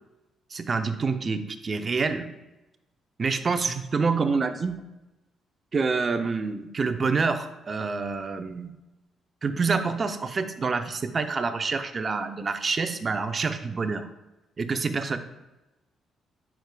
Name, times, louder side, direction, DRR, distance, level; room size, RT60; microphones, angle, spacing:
voice 1, 0.5-2.3 3.2-4.8 5.7-8.7 9.4-14.1 14.6-15.2, right 4 dB, 40° right, 9 dB, 0.6 m, -27 dB
10.5 x 4.7 x 2.3 m, 1.0 s
cardioid pair, 90°, 0 cm